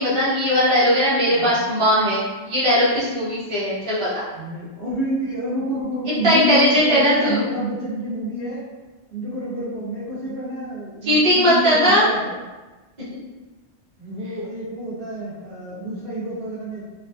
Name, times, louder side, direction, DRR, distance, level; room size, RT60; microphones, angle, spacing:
voice 1, 0.0-4.1 6.2-7.4 11.0-12.0, equal, 30° right, -11 dB, 1.1 m, -18 dB
voice 2, 4.3-8.6 9.1-12.3 14.0-16.9, equal, 55° right, -10 dB, 1.5 m, -28 dB
3.8 x 2.3 x 2.6 m, 1.2 s
omnidirectional pair, 1.2 m